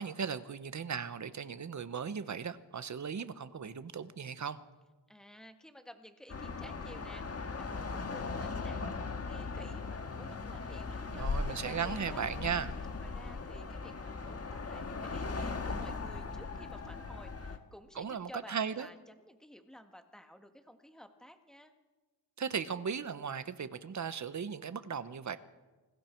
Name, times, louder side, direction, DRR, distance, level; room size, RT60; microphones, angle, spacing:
voice 1, 0.0-4.6 11.1-12.8 17.9-18.9 22.4-25.4, right 6 dB, 40° right, 12 dB, 1.2 m, -37 dB
voice 2, 5.1-12.3 13.0-21.7, equal, ahead, 6 dB, 1.8 m, -53 dB
sound 1, 6.3-17.6, left 4 dB, 35° left, 1.8 m, -38 dB
28.0 x 20.0 x 4.6 m, 1.2 s
cardioid pair, 105°, 43 cm